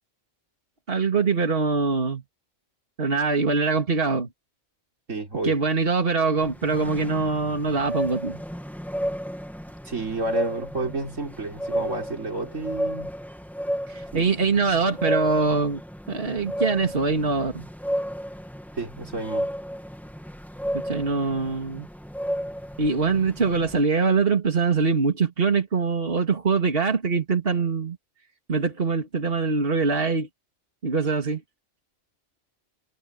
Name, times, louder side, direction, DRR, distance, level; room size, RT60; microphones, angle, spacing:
voice 1, 0.9-2.2 3.0-4.3 5.4-8.4 13.9-15.8 16.1-17.7 20.8-21.9 22.8-28.0 28.5-30.3 30.8-31.4, right 4 dB, 50° right, 2.6 m, -23 dB
voice 2, 5.1-5.6 9.8-13.1 14.1-14.3 18.8-19.5, right 2 dB, 85° right, 4.8 m, -31 dB
sound 1, 6.4-23.8, equal, ahead, 1.4 m, -33 dB
omnidirectional pair, 1.3 m